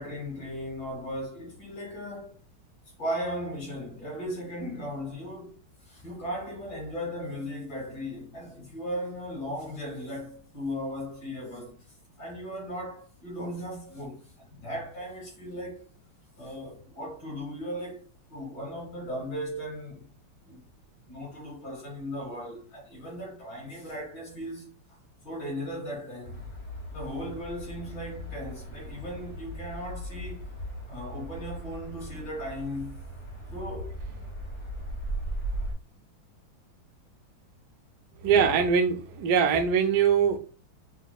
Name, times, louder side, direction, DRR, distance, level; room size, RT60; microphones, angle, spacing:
voice 1, 0.0-2.3 3.0-11.8 12.2-15.9 16.4-18.0 18.3-20.1 20.4-20.6 21.1-24.7 25.2-26.5 26.9-30.5 30.9-33.0 33.5-34.0 35.2-35.3 38.4-38.6, equal, 65° left, 2.9 m, -37 dB
sound 1, 26.2-35.7, right 1 dB, 35° left, 0.7 m, -38 dB
voice 2, 38.2-40.4, right 7 dB, 70° right, 1.0 m, -22 dB
6.0 x 2.1 x 2.3 m
omnidirectional pair, 2.2 m